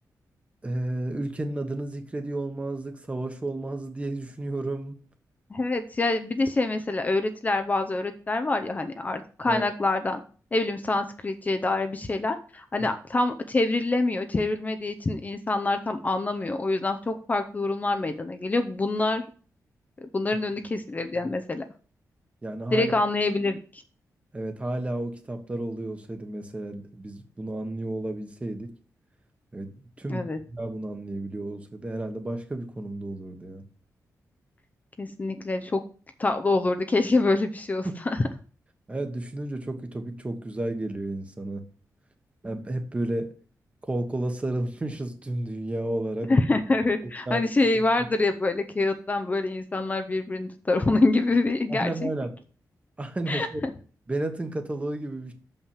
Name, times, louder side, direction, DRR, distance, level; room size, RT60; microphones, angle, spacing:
voice 1, 0.6-5.0 9.5-9.7 12.8-12.9 21.2-21.3 22.4-22.9 24.3-28.7 29.5-33.6 38.9-41.6 42.4-43.3 43.9-46.3 47.3-47.4 51.7-52.3 53.0-53.7 54.1-55.3, right 1 dB, 20° right, 1.3 m, -32 dB
voice 2, 5.5-10.2 10.5-19.2 20.0-21.6 22.7-23.8 30.1-30.4 35.0-35.8 36.2-38.2 46.3-52.1 53.3-53.7, left 2 dB, 25° left, 0.6 m, -26 dB
6.4 x 5.6 x 7.2 m
wide cardioid pair, 145°, 6 cm